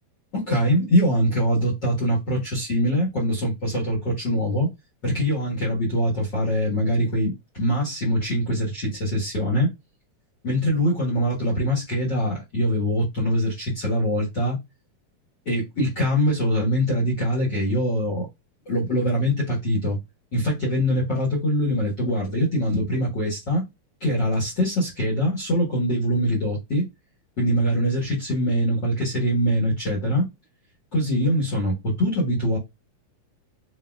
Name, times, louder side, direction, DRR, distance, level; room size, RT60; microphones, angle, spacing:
voice 1, 0.3-4.7 5.0-9.7 10.4-14.6 15.4-18.3 18.6-20.0 20.3-23.6 24.0-26.9 27.4-30.2 30.9-32.6, equal, 55° left, 1.2 m, -23 dB
6.5 x 2.4 x 2.4 m
omnidirectional pair, 4.3 m